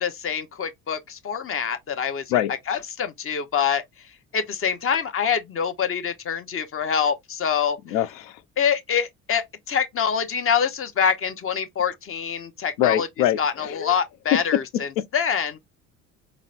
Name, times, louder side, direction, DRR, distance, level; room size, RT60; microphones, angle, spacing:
voice 1, 0.0-2.4 2.7-3.8 4.3-8.0 8.6-13.1 13.4-15.6, left 7 dB, 35° left, 0.7 m, -25 dB
voice 2, 7.9-8.3 12.8-13.9, left 12 dB, 80° left, 0.5 m, -23 dB
3.9 x 2.1 x 2.4 m
supercardioid pair, 75°, 37 cm